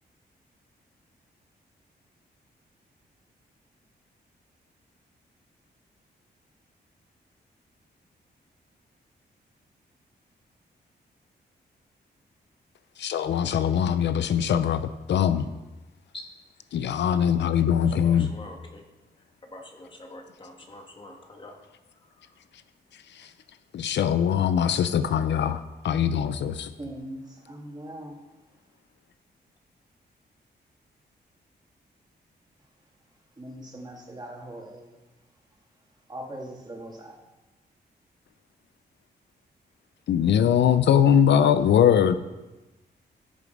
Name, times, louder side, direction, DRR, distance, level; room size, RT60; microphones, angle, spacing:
voice 1, 13.0-15.5 16.7-18.3 23.1-23.3 23.7-26.7 40.1-42.2, left 9 dB, 80° left, 0.6 m, -22 dB
voice 2, 18.0-18.8 19.4-21.6 22.0-22.4, left 2 dB, 30° left, 1.8 m, -45 dB
voice 3, 26.8-28.2 33.4-35.0 36.1-37.2, right 1 dB, 25° right, 2.3 m, -40 dB
13.5 x 6.8 x 5.3 m
wide cardioid pair, 115°, 18 cm